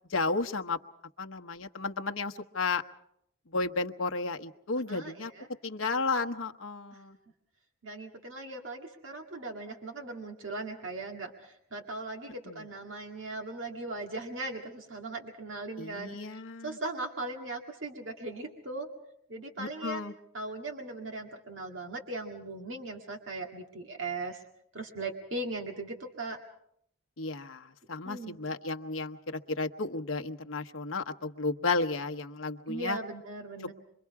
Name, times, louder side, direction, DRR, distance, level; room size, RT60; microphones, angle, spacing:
voice 1, 0.1-0.8 1.2-2.8 3.5-5.3 5.6-7.2 12.5-12.6 15.8-16.8 19.6-20.1 27.2-33.0, left 3 dB, 80° left, 6 dB, 1.1 m, -33 dB
voice 2, 4.9-5.5 6.9-7.0 7.8-18.9 19.3-20.0 20.3-24.4 24.7-26.4 28.0-28.4 32.7-33.7, right 2 dB, 70° right, 2 dB, 1.9 m, -39 dB
26.5 x 24.0 x 4.8 m, 0.71 s
head